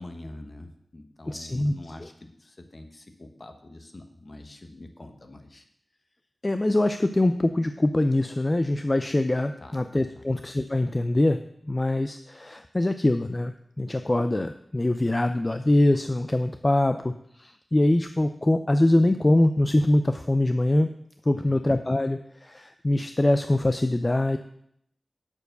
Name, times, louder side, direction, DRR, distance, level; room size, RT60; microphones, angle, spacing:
voice 1, 0.0-5.6 9.6-9.8 10.1-10.2 21.3-21.6, left 1 dB, 50° left, 5 dB, 1.1 m, -45 dB
voice 2, 1.3-1.7 6.4-11.4 11.6-20.9 21.3-24.4, left 1 dB, 35° left, 8 dB, 0.4 m, -23 dB
7.1 x 4.5 x 6.6 m, 0.71 s
cardioid pair, 45°, 0 cm